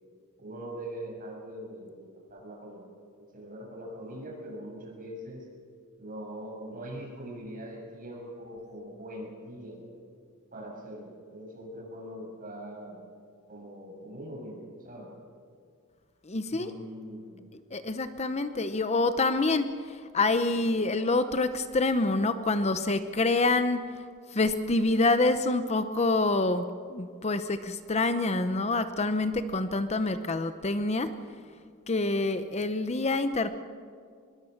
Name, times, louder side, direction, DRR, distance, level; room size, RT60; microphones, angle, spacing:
voice 1, 0.4-2.9 3.2-5.5 6.0-9.8 10.5-13.0 13.5-15.1 16.5-17.4, right 1 dB, 40° right, 0 dB, 6.9 m, -42 dB
voice 2, 16.2-16.7 17.5-31.1 31.9-33.5, left 2 dB, 30° left, 10 dB, 0.8 m, -27 dB
24.5 x 21.5 x 6.5 m, 2.2 s
head